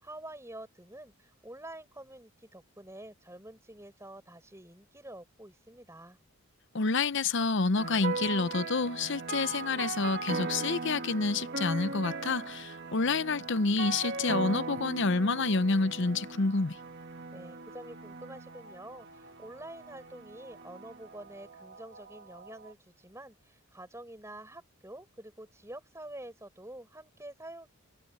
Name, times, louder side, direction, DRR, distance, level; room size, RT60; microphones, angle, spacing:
voice 1, 0.0-6.2 17.3-27.7, right 1 dB, 10° right, 6.8 m, -47 dB
voice 2, 6.7-16.8, left 3 dB, 55° left, 0.7 m, -28 dB
sound 1, 7.8-22.7, right 3 dB, 50° right, 1.4 m, -39 dB
head